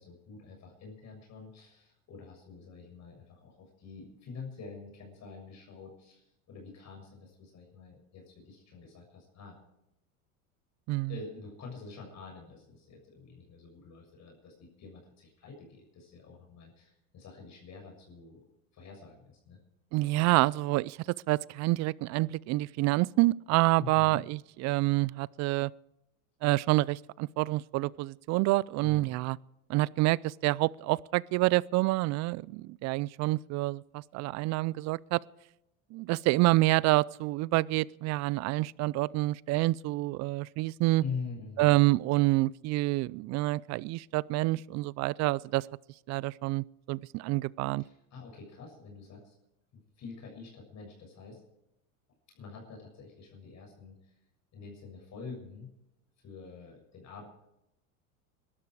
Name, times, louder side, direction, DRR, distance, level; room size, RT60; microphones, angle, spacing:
voice 1, 0.0-9.6 11.1-18.4 18.7-19.6 23.8-24.2 28.8-29.1 41.0-41.8 47.8-49.3 50.0-51.4 52.3-54.1 54.5-55.7 56.2-57.3, left 5 dB, 40° left, 7.0 m, -46 dB
voice 2, 19.9-21.0 21.3-25.7 26.4-29.4 29.7-35.2 35.9-41.0 41.6-45.7 46.1-47.8, right 19 dB, 40° right, 0.5 m, -27 dB
21.5 x 13.0 x 4.8 m
hypercardioid pair, 100°, 42 cm